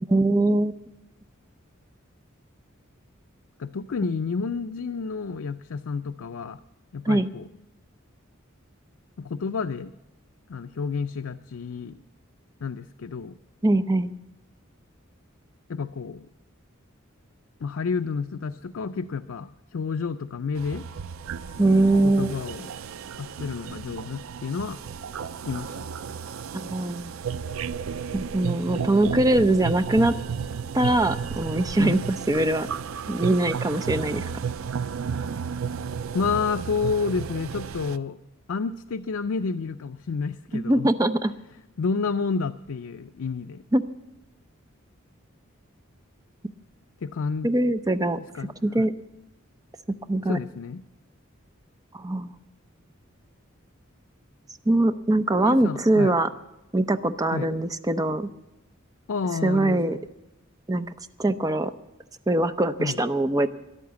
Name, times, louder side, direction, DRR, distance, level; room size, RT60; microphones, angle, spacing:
voice 1, 0.1-0.7 7.1-7.3 13.6-14.1 21.6-22.3 26.5-27.1 28.1-30.1 30.7-32.0 32.3-32.7 33.1-34.3 40.5-41.3 43.7-43.8 46.4-46.5 47.4-48.2 48.6-48.9 50.1-50.4 51.9-52.4 54.7-56.3 56.7-58.3 59.4-60.0 60.7-60.9 61.2-61.7 62.3-63.5, right 1 dB, 15° right, 11 dB, 0.6 m, -22 dB
voice 2, 3.6-6.6 6.9-7.5 9.2-9.9 10.5-12.0 12.6-13.4 15.7-16.3 17.6-20.8 22.0-22.7 23.2-24.8 25.5-25.9 31.8-32.0 35.2-35.3 36.1-38.2 38.5-40.9 41.8-43.6 47.0-47.5 48.3-48.9 50.2-50.8 55.4-56.2 57.3-57.5 59.1-60.0 62.8-63.0, left 5 dB, 75° left, 9 dB, 0.5 m, -30 dB
sound 1, 20.6-38.0, right 6 dB, 75° right, 0.5 m, -33 dB
13.5 x 11.0 x 8.2 m, 0.94 s
head